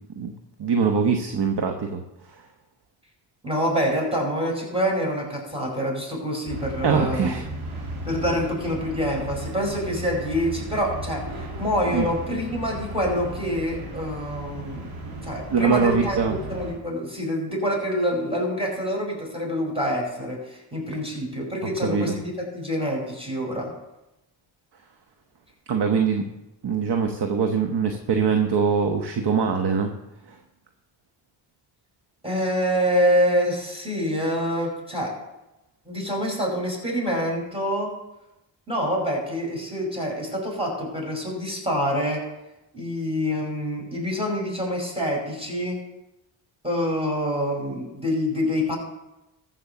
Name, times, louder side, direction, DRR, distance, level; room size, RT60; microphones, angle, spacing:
voice 1, 0.6-2.0 6.8-7.4 11.9-12.1 15.5-16.4 21.8-22.1 25.7-26.2 26.6-29.9 30.3-30.4, right 6 dB, 55° right, 5 dB, 1.3 m, -23 dB
voice 2, 3.4-7.3 8.0-14.9 15.2-16.2 16.5-23.7 32.2-35.1 35.9-37.9 38.7-42.2 42.7-45.8 46.6-48.8, equal, 10° right, -2 dB, 5.4 m, -26 dB
sound 1, 6.5-16.7, right 1 dB, 85° right, 2.8 m, -35 dB
14.0 x 5.7 x 6.8 m, 0.92 s
cardioid pair, 60°, 48 cm